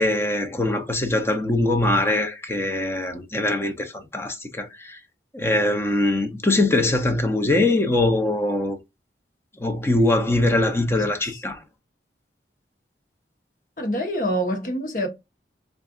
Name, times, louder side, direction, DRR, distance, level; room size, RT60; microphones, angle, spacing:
voice 1, 0.0-5.0 5.3-8.8 9.6-11.6, left 2 dB, 15° left, 0.6 m, -22 dB
voice 2, 13.8-15.1, equal, 50° left, 1.1 m, -25 dB
3.9 x 2.5 x 3.6 m
head